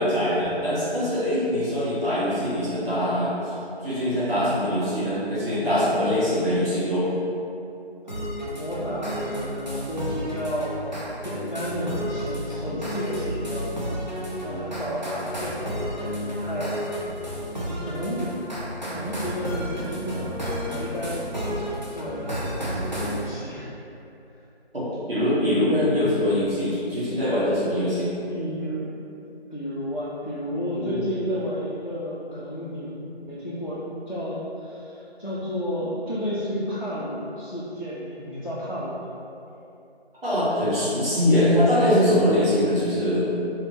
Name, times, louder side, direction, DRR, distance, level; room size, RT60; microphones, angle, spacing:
voice 1, 0.0-3.5 3.8-7.1 24.7-28.1 30.7-31.0 40.2-43.3, left 1 dB, 60° right, -12 dB, 1.5 m, -23 dB
sound 1, 8.1-23.2, equal, 45° right, 0.6 m, -31 dB
voice 2, 8.6-10.8 11.2-16.9 17.8-18.4 18.9-21.2 21.9-23.7 28.3-29.0 29.5-32.9 33.2-39.1, equal, 45° left, -9 dB, 0.4 m, -32 dB
3.5 x 3.0 x 2.9 m, 2.8 s
figure-of-eight pair, 175°, 32 cm